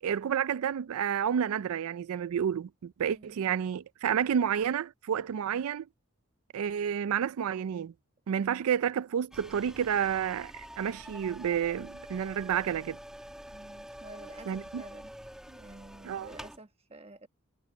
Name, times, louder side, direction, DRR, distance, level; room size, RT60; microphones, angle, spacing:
voice 1, 0.0-5.9 6.5-7.9 8.3-13.0 14.5-14.8 16.0-16.3, right 8 dB, 85° right, 0.4 m, -30 dB
sound 1, 9.3-16.6, equal, 5° right, 1.4 m, -47 dB
voice 2, 13.5-15.1 15.5-17.3, right 2 dB, 30° right, 1.3 m, -50 dB
head